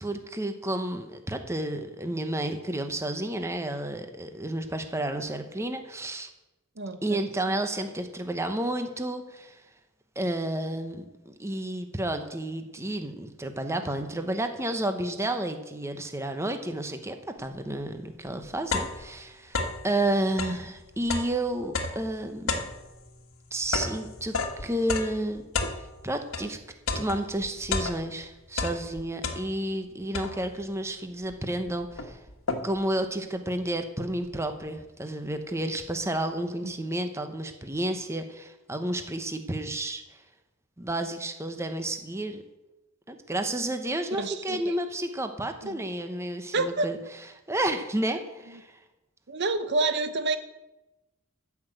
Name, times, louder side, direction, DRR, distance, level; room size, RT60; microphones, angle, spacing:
voice 1, 0.0-6.3 7.0-9.6 10.2-22.6 23.5-25.4 26.0-26.6 26.9-32.2 32.6-40.2 40.8-42.4 43.1-47.0 47.5-48.8, right 1 dB, 15° right, 7 dB, 1.0 m, -31 dB
voice 2, 6.8-7.6 44.2-44.7 45.6-45.8 46.5-46.9 49.3-50.4, right 3 dB, 55° right, 10 dB, 0.7 m, -29 dB
sound 1, 17.8-17.9 18.3-19.9 20.3-26.5 26.9-28.2 28.5-29.8 30.1-30.7 31.3-31.4 31.7-32.9, left 3 dB, 75° left, 1.4 m, -32 dB
14.0 x 6.0 x 7.8 m, 1.0 s
head